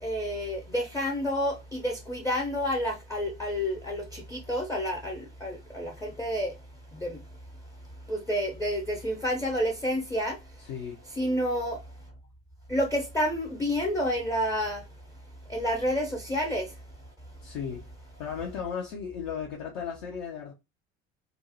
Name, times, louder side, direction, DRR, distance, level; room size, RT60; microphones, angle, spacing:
voice 1, 0.0-6.5 6.9-7.2 8.1-10.4 11.2-11.8 12.7-14.8 15.5-16.7, equal, 10° left, 0.4 m, -29 dB
voice 2, 10.6-11.0 17.4-17.9 18.2-20.5, left 7 dB, 60° left, 0.6 m, -35 dB
2.4 x 2.0 x 2.6 m
hypercardioid pair, 70°, 36 cm